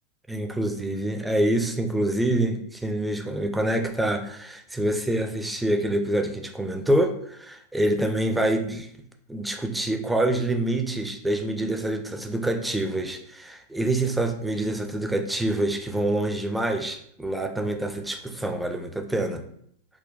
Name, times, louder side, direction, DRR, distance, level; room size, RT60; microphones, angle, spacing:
voice 1, 0.3-8.9 9.3-19.4, right 1 dB, 5° right, 4 dB, 0.3 m, -26 dB
3.7 x 2.2 x 2.3 m, 0.68 s
figure-of-eight pair, 90°, 0 cm